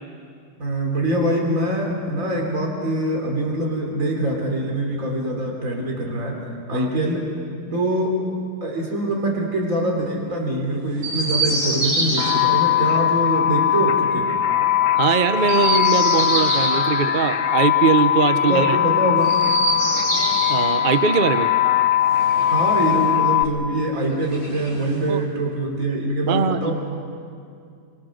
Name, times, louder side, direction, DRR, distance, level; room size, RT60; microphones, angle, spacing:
voice 1, 0.6-6.4 6.7-7.3 7.7-8.3 8.6-14.3 18.5-19.3 22.4-26.7, right 1 dB, 40° right, 0 dB, 3.6 m, -24 dB
Chirp tweet, 11.0-12.3 15.3-16.8 19.2-20.6 22.0-23.1 24.2-25.1, right 1 dB, 20° right, 7.7 m, -25 dB
sound 1, 12.2-23.4, left 11 dB, 85° left, 1.8 m, -20 dB
voice 2, 15.0-18.8 20.5-21.5 25.1-25.2 26.3-26.7, right 6 dB, 70° right, 10 dB, 0.4 m, -21 dB
26.0 x 25.5 x 6.3 m, 2.3 s
omnidirectional pair, 2.1 m